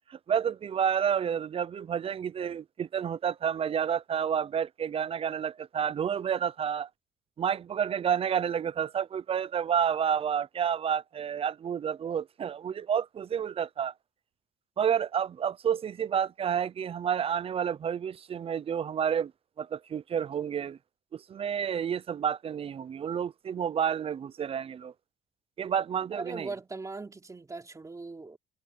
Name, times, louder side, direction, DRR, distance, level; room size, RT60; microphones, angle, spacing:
voice 1, 0.1-6.9 7.4-13.9 14.8-19.3 19.6-20.8 21.1-24.9 25.6-26.5, right 8 dB, 35° right, 0.5 m, -30 dB
voice 2, 26.1-28.4, right 3 dB, 20° right, 3.6 m, -40 dB
cardioid pair, 110°, 17 cm